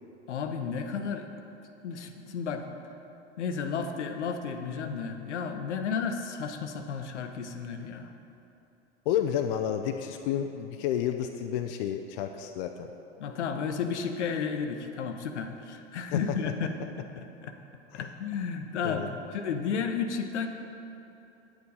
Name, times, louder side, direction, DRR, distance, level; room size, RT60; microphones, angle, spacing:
voice 1, 0.3-1.3 1.8-2.7 3.4-8.1 13.2-17.5 17.9-19.1 19.3-20.5, left 6 dB, 70° left, 6 dB, 0.8 m, -33 dB
voice 2, 9.1-12.9 16.1-16.2 17.9-18.1 18.8-19.1, left 10 dB, 50° left, 6 dB, 0.5 m, -30 dB
9.2 x 8.8 x 4.0 m, 2.9 s
figure-of-eight pair, 80°, 36 cm